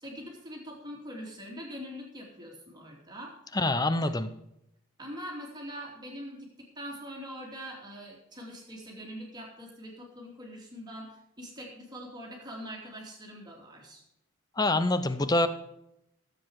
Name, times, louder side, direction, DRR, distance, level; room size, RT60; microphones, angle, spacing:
voice 1, 0.0-3.3 3.9-4.2 5.0-14.0, equal, 20° right, -1 dB, 2.7 m, -43 dB
voice 2, 3.5-4.3 14.6-15.5, left 2 dB, 20° left, 11 dB, 0.7 m, -25 dB
15.0 x 7.9 x 4.8 m, 0.83 s
head